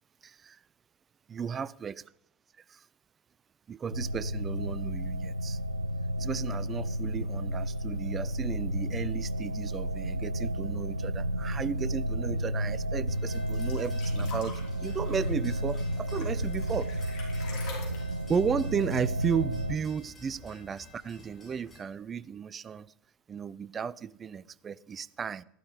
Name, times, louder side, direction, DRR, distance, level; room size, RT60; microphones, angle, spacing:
voice 1, 0.2-0.6 1.3-2.0 2.7-2.9 3.7-5.6 6.2-16.9 18.3-22.9 23.3-25.4, right 6 dB, 25° right, 0.5 m, -34 dB
sound 1, 3.9-19.8, right 1 dB, 85° right, 0.5 m, -32 dB
sound 2, 13.1-21.8, left 2 dB, 15° left, 6.4 m, -51 dB
sound 3, 13.3-19.7 20.0-20.1 20.4-21.1 21.9-22.0, left 4 dB, 45° left, 5.2 m, -47 dB
14.5 x 11.5 x 5.1 m
figure-of-eight pair, 70°, 0 cm